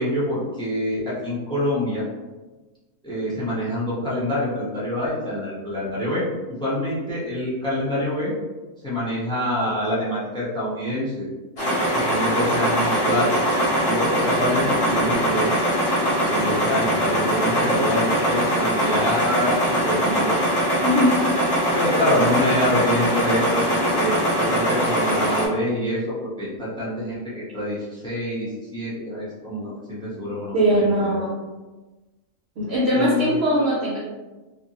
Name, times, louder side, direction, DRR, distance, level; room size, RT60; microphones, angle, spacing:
voice 1, 0.0-2.0 3.0-6.2 6.6-8.3 8.8-11.3 11.9-13.3 13.8-15.6 16.3-20.3 21.7-24.2 24.5-31.2 32.9-33.4, left 1 dB, 5° left, -8 dB, 0.4 m, -26 dB
sound 1, 11.6-25.5, equal, 50° left, 1.1 m, -22 dB
voice 2, 20.8-21.2 30.5-31.4 32.6-34.0, equal, 65° right, -5 dB, 0.6 m, -20 dB
2.6 x 2.5 x 2.7 m, 1.2 s
omnidirectional pair, 1.6 m